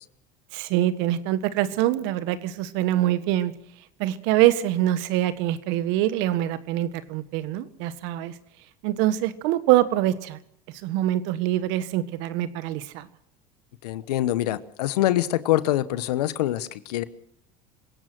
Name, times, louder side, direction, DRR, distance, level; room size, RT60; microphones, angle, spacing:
voice 1, 0.5-3.5 4.0-8.3 8.8-10.4 10.8-13.1, right 14 dB, 70° right, 13 dB, 1.5 m, -24 dB
voice 2, 13.8-17.0, left 14 dB, 85° left, 15 dB, 1.1 m, -24 dB
27.0 x 17.0 x 6.1 m, 0.75 s
hypercardioid pair, 85°, 20 cm